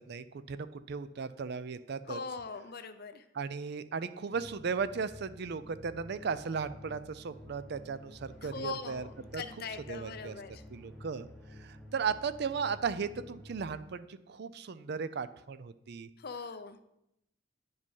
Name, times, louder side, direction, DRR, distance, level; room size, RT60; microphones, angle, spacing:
voice 1, 0.0-2.2 3.3-9.1 9.3-9.4 9.9-10.3 10.7-11.3 11.6-16.1, right 5 dB, 55° right, 14 dB, 0.4 m, -36 dB
voice 2, 2.1-3.2 8.4-10.6 16.2-16.8, left 4 dB, 50° left, 11 dB, 0.6 m, -41 dB
sound 1, 4.3-13.6, left 1 dB, ahead, 1.4 m, -51 dB
9.7 x 5.2 x 5.4 m, 0.82 s
head